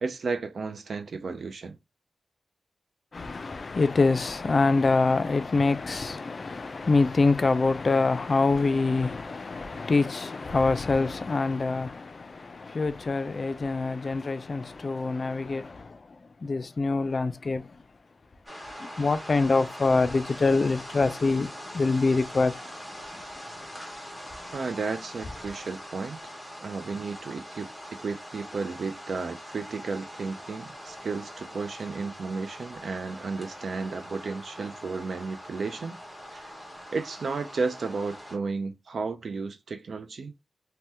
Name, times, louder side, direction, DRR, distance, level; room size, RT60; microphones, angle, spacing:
voice 1, 0.0-1.8 24.5-26.2 26.6-36.0 36.3-36.5 36.9-40.3, right 4 dB, 65° right, 0.4 m, -33 dB
voice 2, 3.1-17.8 18.8-22.7 23.1-23.2, left 3 dB, 45° left, 0.4 m, -25 dB
sound 1, 18.5-38.4, equal, 10° right, 1.0 m, -43 dB
2.7 x 2.1 x 3.4 m
wide cardioid pair, 100°, 0 cm